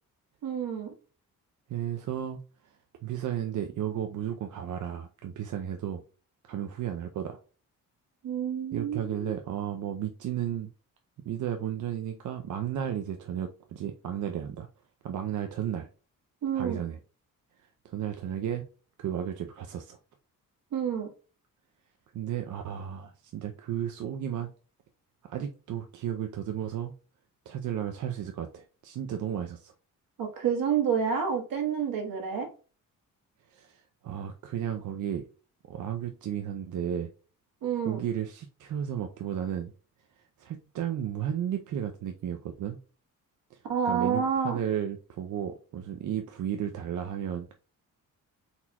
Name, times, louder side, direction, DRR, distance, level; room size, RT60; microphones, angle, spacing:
voice 1, 0.4-0.9 8.2-9.3 16.4-16.8 20.7-21.1 30.2-32.5 37.6-38.0 43.7-44.6, right 7 dB, 80° right, 3 dB, 1.5 m, -29 dB
voice 2, 1.7-2.4 3.0-6.0 6.5-7.4 8.7-10.7 11.3-14.7 15.0-15.9 16.5-17.0 17.8-18.7 19.0-20.0 22.1-24.5 25.2-26.9 27.5-29.7 33.5-35.2 35.7-37.1 37.8-39.7 40.4-42.8 43.5-43.6 43.9-47.5, right 9 dB, 60° right, 5 dB, 0.5 m, -33 dB
4.3 x 4.1 x 2.2 m, 0.36 s
wide cardioid pair, 150°, 34 cm